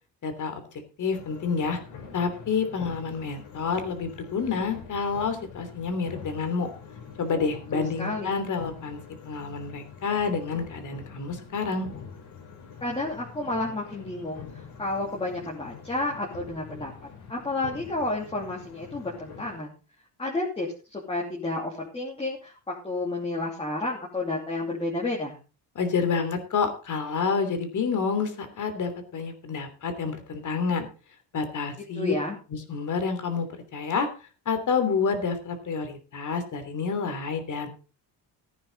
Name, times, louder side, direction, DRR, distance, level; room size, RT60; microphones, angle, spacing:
voice 1, 0.2-0.5 1.0-1.8 2.1-6.7 7.2-9.0 9.2-11.9 25.7-30.9 31.3-32.1 32.5-33.5 33.7-34.1 34.4-37.7, left 5 dB, 45° left, 9 dB, 3.2 m, -28 dB
sound 1, 1.1-19.6, left 6 dB, 70° left, 5.2 m, -45 dB
voice 2, 7.7-8.4 12.8-16.9 17.3-19.7 20.2-25.4 31.9-32.4, left 2 dB, 15° left, -3 dB, 2.9 m, -31 dB
15.0 x 9.7 x 4.0 m, 0.33 s
cardioid pair, 145°, 41 cm